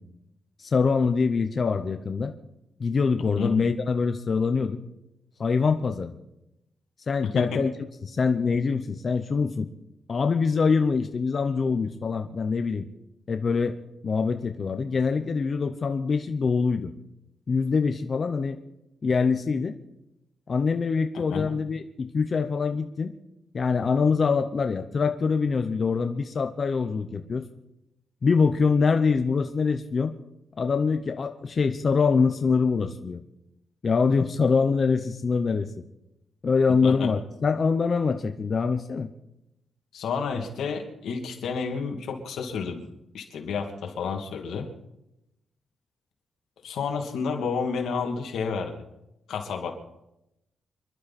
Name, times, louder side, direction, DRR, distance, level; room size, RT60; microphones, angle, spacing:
voice 1, 0.6-2.3 2.8-4.8 5.4-6.1 7.1-7.7 8.0-9.7 10.1-12.9 13.3-13.7 14.0-16.9 17.5-18.6 19.0-19.7 20.5-23.1 23.5-27.5 28.2-30.2 30.6-33.2 33.8-35.7 36.4-39.1, left 5 dB, 35° left, 6 dB, 0.8 m, -24 dB
voice 2, 39.9-42.8 43.1-44.7 46.6-48.7 49.3-49.8, left 5 dB, 85° left, 3 dB, 2.5 m, -30 dB
27.5 x 11.5 x 4.3 m, 0.88 s
wide cardioid pair, 160°, 0 cm